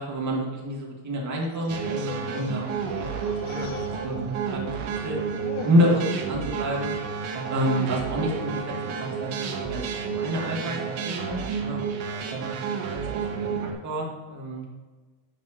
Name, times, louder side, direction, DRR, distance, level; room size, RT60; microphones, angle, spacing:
voice 1, 0.0-4.7 5.0-5.2 5.6-6.9 7.5-13.5 13.8-14.6, equal, 35° right, -2 dB, 2.1 m, -29 dB
sound 1, 1.4-2.5 2.8-4.7 5.0-6.1 6.6-7.0 7.3-7.5 8.3-8.7 9.2-9.6 10.4-12.6, left 7 dB, 70° left, 1.0 m, -43 dB
sound 2, 1.7-13.7, right 6 dB, 70° right, 1.5 m, -31 dB
sound 3, 2.7-5.2, right 5 dB, 5° right, 1.8 m, -48 dB
10.0 x 7.4 x 3.1 m, 1.3 s
cardioid pair, 180°, 50 cm